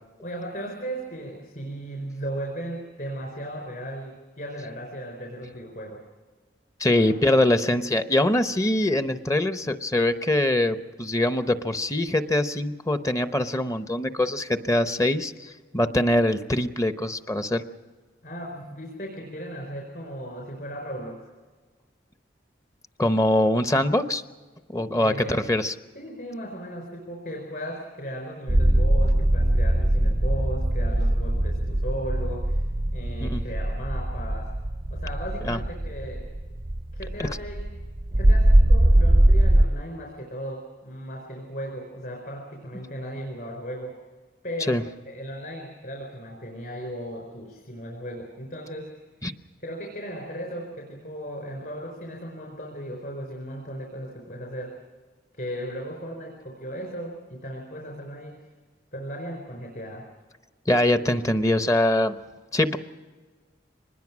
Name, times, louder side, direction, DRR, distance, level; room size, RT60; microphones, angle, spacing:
voice 1, 0.2-6.0 6.9-7.2 18.2-21.2 24.9-25.4 25.9-34.5 34.9-36.3 36.9-37.6 38.2-44.0 44.4-48.9 49.6-54.8 55.3-58.5 58.9-60.1, equal, 55° left, 0 dB, 4.8 m, -36 dB
voice 2, 6.8-17.6 23.0-24.2 24.7-25.7 33.2-33.4 35.4-35.6 37.2-37.3 44.7-44.8 49.2-49.3 60.7-62.1 62.5-62.8, left 1 dB, 20° left, 9 dB, 0.8 m, -23 dB
sound 1, 28.5-39.6, right 1 dB, 30° right, 0.6 m, -21 dB
24.5 x 20.5 x 6.2 m, 1.3 s
head